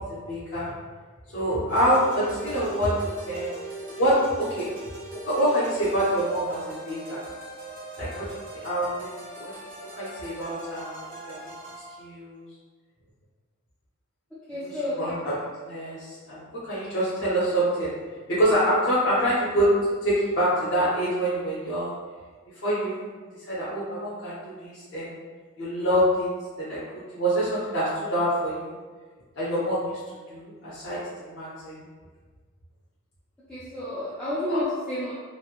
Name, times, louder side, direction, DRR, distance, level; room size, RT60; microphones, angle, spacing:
voice 1, 0.1-0.7 1.3-2.9 3.2-3.6 3.9-4.1 4.5-4.7 5.1-7.2 8.0-8.3 8.5-8.9 9.1-9.5 10.0-11.4 12.0-12.4 14.6-15.4 15.7-17.9 18.3-19.7 20.0-22.0 22.6-23.1 23.5-25.2 25.6-26.3 26.6-26.8 27.1-28.7 29.4-30.0 30.3-31.8 34.5-34.7, equal, 60° left, -10 dB, 0.7 m, -26 dB
sound 1, 1.7-12.0, right 2 dB, 40° right, 0.7 m, -40 dB
voice 2, 14.5-15.0 33.5-35.1, left 1 dB, 5° left, -13 dB, 0.4 m, -30 dB
3.0 x 2.0 x 2.4 m, 1.5 s
head